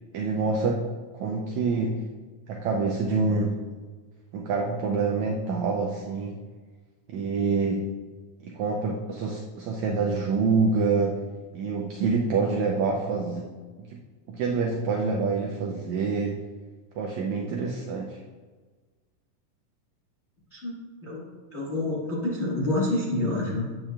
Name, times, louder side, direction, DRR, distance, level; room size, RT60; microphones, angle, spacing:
voice 1, 0.1-0.9 1.2-2.0 2.5-3.6 4.3-6.4 7.1-7.9 8.4-11.2 11.5-13.5 13.8-14.0 14.3-16.4 17.0-18.2, right 4 dB, 80° right, 0 dB, 1.6 m, -26 dB
voice 2, 21.0-23.7, left 2 dB, 40° left, -7 dB, 0.9 m, -28 dB
9.1 x 8.5 x 2.3 m, 1.4 s
omnidirectional pair, 4.0 m